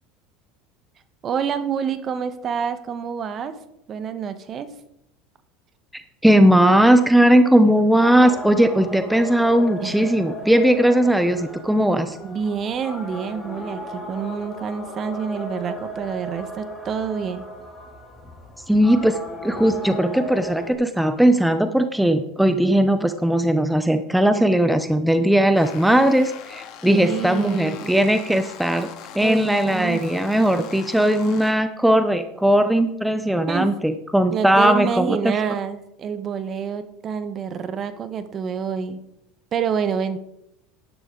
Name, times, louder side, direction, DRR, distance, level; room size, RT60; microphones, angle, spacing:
voice 1, 1.2-3.6 3.9-4.7 9.8-10.0 12.2-17.4 26.8-28.1 29.2-30.0 33.5-33.7 34.3-39.0 39.5-40.2, right 7 dB, 40° right, 11 dB, 1.2 m, -27 dB
voice 2, 5.9-12.2 18.7-28.9 29.1-35.3, right 1 dB, 5° right, 9 dB, 0.8 m, -18 dB
sound 1, 8.0-20.7, left 1 dB, 15° left, 3.0 m, -36 dB
sound 2, 25.5-31.5, left 9 dB, 60° left, 2.0 m, -41 dB
11.5 x 10.5 x 3.9 m, 0.80 s
hypercardioid pair, 100°, 0 cm